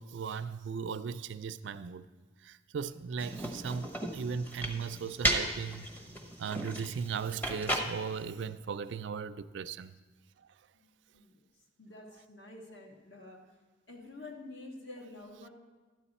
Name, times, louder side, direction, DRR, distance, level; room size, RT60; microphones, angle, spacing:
voice 1, 0.0-2.0 2.4-5.9 6.4-10.0 10.4-10.5, right 6 dB, 65° right, 0.4 m, -37 dB
sound 1, 3.2-8.2, right 1 dB, 10° left, 0.8 m, -35 dB
voice 2, 10.7-11.4 11.8-13.4 13.9-15.5, left 2 dB, 60° left, 1.7 m, -48 dB
12.5 x 9.9 x 4.2 m
head